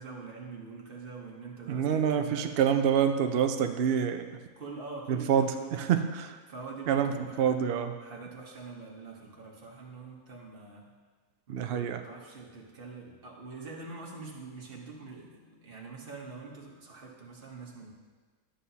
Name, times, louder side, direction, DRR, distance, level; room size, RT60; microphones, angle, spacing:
voice 1, 0.0-2.5 4.6-5.9 6.5-7.6 8.0-10.8 11.5-17.9, right 4 dB, 40° right, -1 dB, 1.2 m, -44 dB
voice 2, 1.7-4.2 5.1-6.3 6.9-7.1 7.4-7.9 11.5-12.0, right 8 dB, 75° right, 7 dB, 0.5 m, -26 dB
11.0 x 7.6 x 2.8 m, 1.4 s
omnidirectional pair, 1.6 m